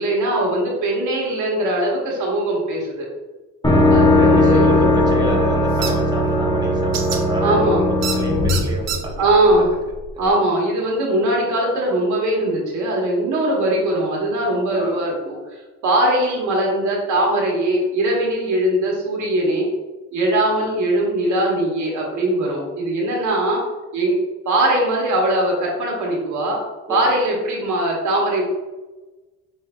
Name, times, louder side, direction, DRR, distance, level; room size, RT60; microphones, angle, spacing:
voice 1, 0.0-3.1 3.9-5.0 5.3-5.4 7.4-7.8 9.2-9.7 10.2-19.7 20.1-23.6 23.9-24.2 24.4-26.6 26.9-28.4, right 1 dB, 75° right, -2 dB, 1.3 m, -20 dB
sound 1, 3.6-9.5, left 1 dB, 15° left, 1.1 m, -18 dB
voice 2, 4.1-9.1 9.4-9.7 10.1-10.4 14.7-15.0 20.5-20.7 26.9-27.2, right 1 dB, 15° right, -1 dB, 0.8 m, -29 dB
sound 2, 5.8-5.9 6.9-7.2 8.0-8.2 8.5-9.0, right 7 dB, 60° right, 0.7 m, -25 dB
5.4 x 3.1 x 2.3 m, 1.2 s
cardioid pair, 90°, 30 cm